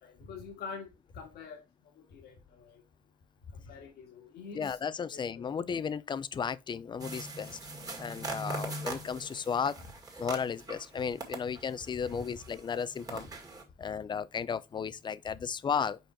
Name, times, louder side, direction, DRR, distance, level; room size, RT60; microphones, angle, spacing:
voice 1, 0.0-1.6 1.9-2.8 3.5-4.8 5.1-5.5 8.3-8.5, left 5 dB, 70° left, 1.7 m, -46 dB
voice 2, 4.5-7.6 8.0-9.7 10.2-13.3 13.8-16.0, left 6 dB, 25° left, 0.4 m, -34 dB
sound 1, 7.0-10.9 11.2-13.6, right 2 dB, 20° right, 2.0 m, -41 dB
5.4 x 4.3 x 4.4 m
cardioid pair, 110°, 17 cm